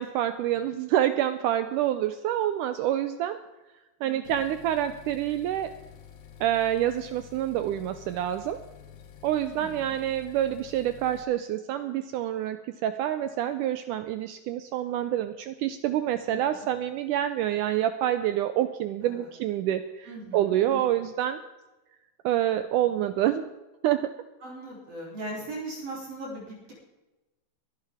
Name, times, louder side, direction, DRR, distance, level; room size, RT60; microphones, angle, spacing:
voice 1, 0.0-3.4 4.0-5.7 6.4-8.6 9.2-21.4 22.3-23.5 23.8-24.1, right 12 dB, 80° right, 10 dB, 1.9 m, -27 dB
voice 2, 4.0-4.4 9.4-10.0 16.3-16.6 19.0-19.2 20.1-20.8 24.4-26.7, right 1 dB, 40° right, -3 dB, 4.1 m, -39 dB
sound 1, 4.2-11.2, left 8 dB, 85° left, 3.1 m, -49 dB
23.0 x 11.5 x 3.6 m, 1.1 s
omnidirectional pair, 4.2 m